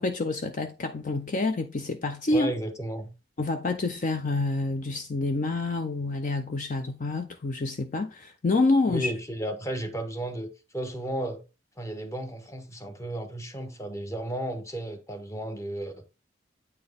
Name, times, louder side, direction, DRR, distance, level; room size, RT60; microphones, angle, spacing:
voice 1, 0.0-2.5 3.4-9.1, left 2 dB, 40° left, 0.5 m, -27 dB
voice 2, 2.3-3.1 8.9-11.4 11.8-15.9, right 1 dB, 15° left, 0.9 m, -34 dB
8.6 x 4.3 x 3.5 m
head